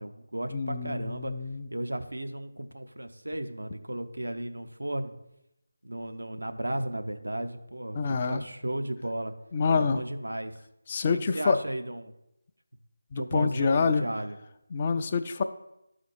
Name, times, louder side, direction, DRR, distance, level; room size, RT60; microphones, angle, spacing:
voice 1, 0.0-1.3 1.7-5.1 5.8-9.3 9.7-10.6 11.3-12.1 13.1-14.4, right 1 dB, 75° right, 7 dB, 0.8 m, -34 dB
voice 2, 0.5-1.7 7.9-8.4 9.5-10.0 10.9-11.6 13.1-14.1 14.7-15.4, left 5 dB, 25° left, 7 dB, 0.4 m, -27 dB
12.5 x 4.2 x 4.7 m, 0.88 s
figure-of-eight pair, 160°, 0 cm